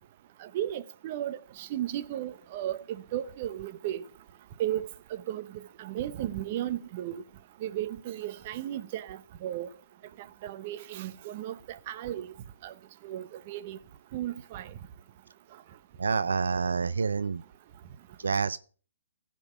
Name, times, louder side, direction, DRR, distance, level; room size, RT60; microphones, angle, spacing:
voice 1, 0.4-4.0 4.6-5.5 5.8-7.2 7.6-9.7 10.4-12.3 12.6-12.7 13.0-13.8 14.1-14.7, right 12 dB, 45° right, 0.8 m, -35 dB
voice 2, 16.0-17.4 18.2-18.6, right 5 dB, 85° right, 0.4 m, -28 dB
15.5 x 5.3 x 6.0 m
hypercardioid pair, 140°, 0 cm